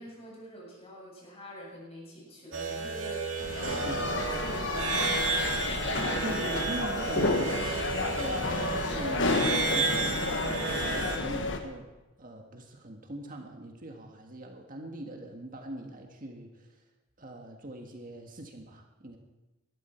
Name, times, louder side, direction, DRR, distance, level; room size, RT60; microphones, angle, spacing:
voice 1, 0.0-5.6, equal, 30° left, -3 dB, 6.9 m, -46 dB
sound 1, 2.5-11.2, right 4 dB, 90° right, 2.3 m, -32 dB
sound 2, 3.4-11.6, left 3 dB, 65° left, 1.5 m, -31 dB
voice 2, 6.2-7.6 8.1-11.9 12.2-16.8 17.2-19.2, right 1 dB, 45° right, 3 dB, 1.7 m, -41 dB
19.5 x 13.0 x 4.5 m, 1.1 s
head